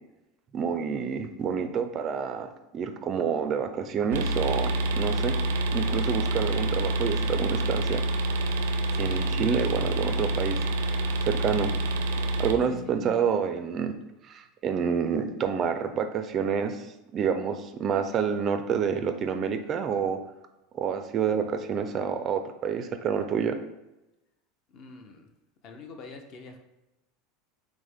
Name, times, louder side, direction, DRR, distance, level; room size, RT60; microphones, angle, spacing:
voice 1, 0.5-5.3 5.7-8.0 9.0-10.6 11.2-11.8 12.4-13.9 14.3-16.9 17.1-20.2 20.7-23.6, right 7 dB, 30° right, 8 dB, 0.4 m, -28 dB
sound 1, 4.1-12.5, right 1 dB, 90° right, 0.5 m, -27 dB
voice 2, 8.9-9.3 12.7-12.8 24.7-25.3 25.6-26.6, left 4 dB, 40° left, 4 dB, 0.6 m, -45 dB
6.2 x 2.1 x 3.4 m, 0.96 s
supercardioid pair, 150°, 0 cm